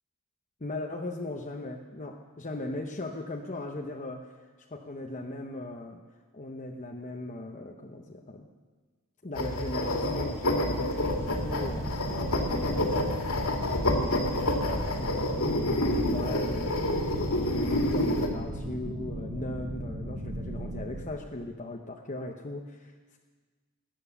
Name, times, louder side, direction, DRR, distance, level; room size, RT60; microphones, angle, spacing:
voice 1, 0.6-4.4 4.7-6.0 6.3-8.5 9.2-14.5 15.0-16.8 17.5-22.9, left 2 dB, 35° left, 1 dB, 0.9 m, -38 dB
sound 1, 9.4-18.3, left 1 dB, 70° left, 2.5 m, -28 dB
sound 2, 11.1-21.1, equal, 80° right, 1.7 m, -37 dB
22.0 x 9.3 x 7.0 m, 1.4 s
head